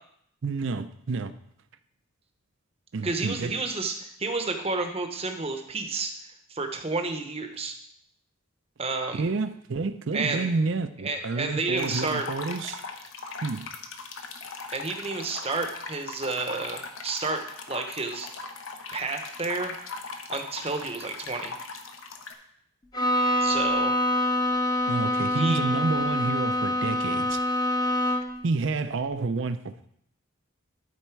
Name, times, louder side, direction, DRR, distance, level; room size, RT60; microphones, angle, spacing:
voice 1, 0.4-1.3 2.9-3.5 9.1-12.8 13.4-13.7 24.9-27.4 28.4-29.9, right 3 dB, 60° right, 0.5 m, -29 dB
voice 2, 3.0-6.1 6.5-7.7 8.8-9.2 10.1-10.5 11.0-12.3 14.7-18.3 18.9-19.7 20.3-21.5 23.4-23.9 25.3-25.6, right 3 dB, 30° right, 0.8 m, -30 dB
sound 1, 11.8-22.3, left 4 dB, 70° left, 0.9 m, -39 dB
Bowed string instrument, 22.9-28.5, left 1 dB, 20° left, 0.7 m, -25 dB
12.5 x 4.3 x 4.5 m
head